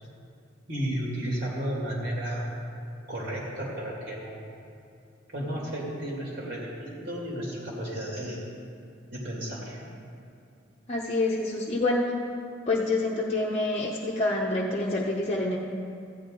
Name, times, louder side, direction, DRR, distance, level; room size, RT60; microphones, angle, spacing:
voice 1, 0.7-2.5 3.1-4.4 5.3-8.4 9.1-9.8, right 1 dB, 60° right, -4 dB, 2.3 m, -33 dB
voice 2, 10.9-12.0 12.7-15.6, left 2 dB, 35° left, -4 dB, 0.8 m, -27 dB
15.0 x 9.2 x 3.8 m, 2.5 s
head